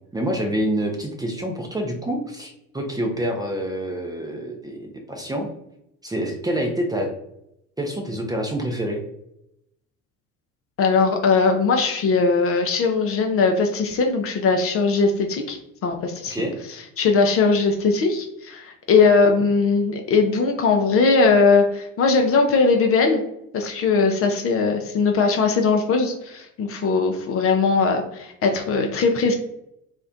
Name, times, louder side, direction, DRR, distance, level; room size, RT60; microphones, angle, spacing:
voice 1, 0.1-5.5 6.0-7.1 7.8-9.0 16.3-16.6, right 1 dB, 10° right, 1 dB, 0.6 m, -27 dB
voice 2, 10.8-16.5 17.0-23.2 23.5-29.3, left 4 dB, 35° left, 3 dB, 0.5 m, -20 dB
2.4 x 2.1 x 3.7 m, 0.80 s
figure-of-eight pair, 65°, 41 cm